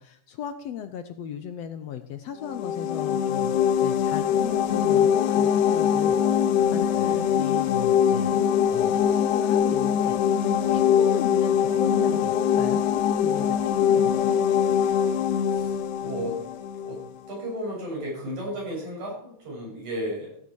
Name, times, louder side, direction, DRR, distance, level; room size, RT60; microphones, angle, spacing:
voice 1, 0.0-14.4, left 9 dB, 70° left, 9 dB, 1.7 m, -36 dB
sound 1, 2.4-17.1, left 8 dB, 85° left, 2.3 m, -23 dB
voice 2, 6.9-7.4 15.5-15.8 16.0-16.5 16.8-20.4, equal, 75° right, -3 dB, 8.4 m, -34 dB
15.5 x 8.9 x 4.7 m, 0.62 s
omnidirectional pair, 3.5 m